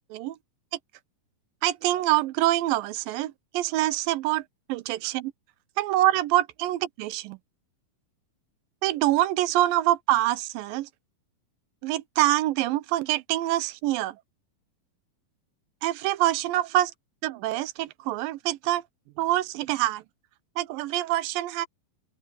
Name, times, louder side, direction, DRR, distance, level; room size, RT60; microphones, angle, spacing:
voice 1, 1.6-4.4 4.7-5.3 5.8-7.4 8.8-10.9 11.8-14.2 15.8-16.9 17.2-18.8 19.2-20.0 20.6-21.7, right 15 dB, 80° right, 2.4 m, -25 dB
open air
omnidirectional pair, 4.1 m